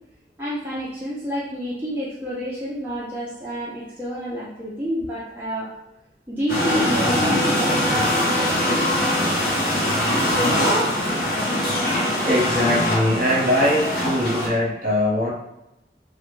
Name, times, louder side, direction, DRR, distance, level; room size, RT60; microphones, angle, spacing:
voice 1, 0.4-5.7 6.3-8.4, equal, 10° right, -9 dB, 0.4 m, -29 dB
sound 1, 6.5-14.5, left 1 dB, 50° left, 0.7 m, -22 dB
voice 2, 12.2-15.3, left 1 dB, 50° right, -5 dB, 0.9 m, -21 dB
2.1 x 2.1 x 3.0 m, 0.88 s
head